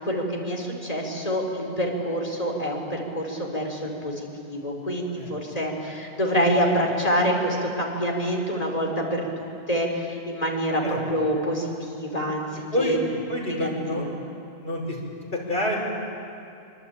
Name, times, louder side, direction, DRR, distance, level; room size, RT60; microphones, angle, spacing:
voice 1, 0.0-13.0 13.5-14.1, equal, 35° left, 0 dB, 4.3 m, -26 dB
voice 2, 13.3-14.0 14.6-15.0 15.3-15.8, left 1 dB, 50° left, -2 dB, 5.6 m, -27 dB
26.0 x 23.5 x 9.0 m, 2.6 s
omnidirectional pair, 1.2 m